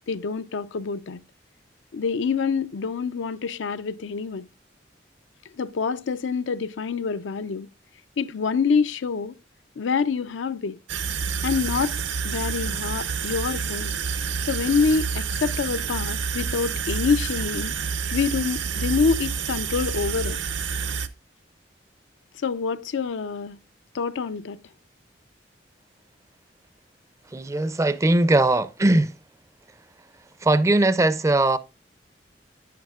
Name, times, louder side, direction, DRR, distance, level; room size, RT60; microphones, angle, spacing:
voice 1, 0.1-1.2 1.9-4.5 5.6-7.7 8.2-9.3 9.8-10.8 11.4-12.0 12.2-13.9 14.5-17.8 18.1-20.4 22.4-23.6 23.9-24.6, left 5 dB, 85° left, 0.5 m, -26 dB
sound 1, 10.9-21.1, right 6 dB, 80° right, 0.7 m, -28 dB
voice 2, 27.3-29.2 30.4-31.6, right 2 dB, 15° right, 0.4 m, -20 dB
10.5 x 9.7 x 2.3 m
head